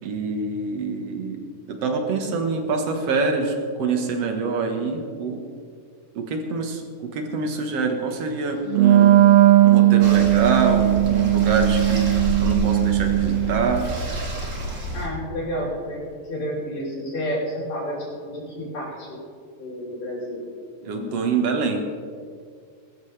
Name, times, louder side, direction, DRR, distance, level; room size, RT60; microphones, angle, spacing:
voice 1, 0.0-1.4 1.7-5.4 6.2-9.3 9.6-12.1 12.4-13.9 20.8-21.8, right 4 dB, 55° right, 4 dB, 2.3 m, -25 dB
Wind instrument woodwind instrument, 8.7-13.8, right 14 dB, 75° right, 1.7 m, -17 dB
sound 1, 10.0-15.1, right 1 dB, 35° right, 1.9 m, -29 dB
voice 2, 14.9-16.0 16.3-19.2 19.6-20.4 20.8-21.2, equal, 75° left, -10 dB, 5.7 m, -30 dB
21.0 x 14.0 x 3.4 m, 2.1 s
omnidirectional pair, 3.8 m